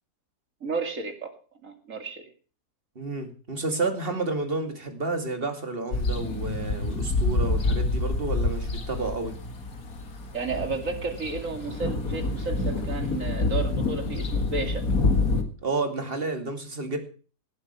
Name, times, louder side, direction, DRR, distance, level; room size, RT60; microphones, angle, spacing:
voice 1, 0.6-1.3 1.6-2.3 10.3-14.8, right 4 dB, 55° right, 6 dB, 2.8 m, -32 dB
voice 2, 3.0-9.3 15.6-17.0, right 3 dB, 35° right, 6 dB, 2.7 m, -30 dB
sound 1, 5.9-15.4, left 3 dB, 60° left, 2.4 m, -27 dB
18.5 x 8.0 x 7.0 m, 0.39 s
omnidirectional pair, 1.7 m